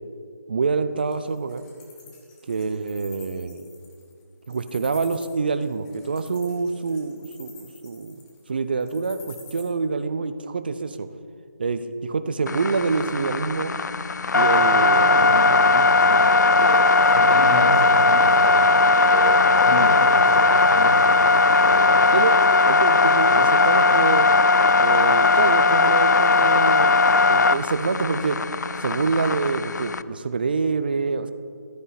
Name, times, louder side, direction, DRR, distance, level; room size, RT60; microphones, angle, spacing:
voice 1, 0.5-1.7 2.5-3.6 4.5-8.2 8.5-11.1 11.6-13.7 14.3-15.3 16.6-16.7 22.1-22.4 22.7-24.3 24.8-28.4 28.8-31.3, right 4 dB, 30° right, 11 dB, 0.4 m, -26 dB
Wild animals, 1.0-9.6, left 5 dB, 5° left, 0.7 m, -48 dB
sound 1, 12.5-30.0, left 3 dB, 65° left, 0.4 m, -18 dB
voice 2, 14.6-22.1 23.3-23.4, left 1 dB, 50° left, -3 dB, 3.3 m, -31 dB
13.5 x 9.5 x 4.1 m, 2.2 s
figure-of-eight pair, 170°, 10 cm